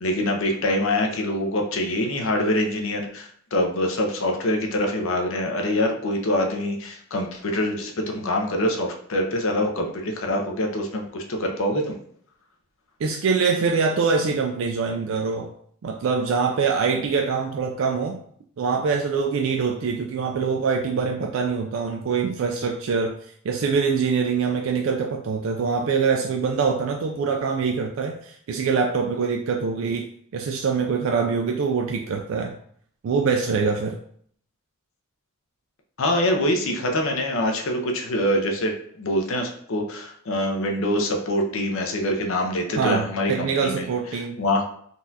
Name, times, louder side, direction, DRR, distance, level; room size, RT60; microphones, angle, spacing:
voice 1, 0.0-12.0 36.0-43.9 44.4-44.6, left 1 dB, 70° left, 2 dB, 0.6 m, -25 dB
voice 2, 13.0-15.5 15.8-18.2 18.6-23.2 23.4-30.1 30.3-32.6 33.0-34.0 42.8-44.4, right 5 dB, 65° right, 3 dB, 0.3 m, -24 dB
3.9 x 2.3 x 2.7 m, 0.62 s
head